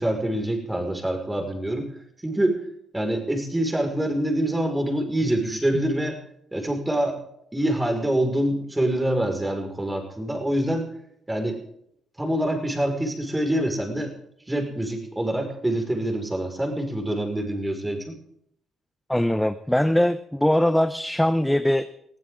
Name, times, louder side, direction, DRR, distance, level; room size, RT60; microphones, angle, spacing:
voice 1, 0.0-1.9 2.2-2.6 2.9-6.2 6.5-7.2 7.5-10.9 11.3-11.6 12.2-14.1 14.5-18.2, right 1 dB, 10° right, 3 dB, 5.4 m, -25 dB
voice 2, 19.1-21.9, left 1 dB, 5° left, 11 dB, 0.8 m, -21 dB
21.0 x 15.5 x 3.8 m, 0.71 s
cardioid pair, 90°, 0 cm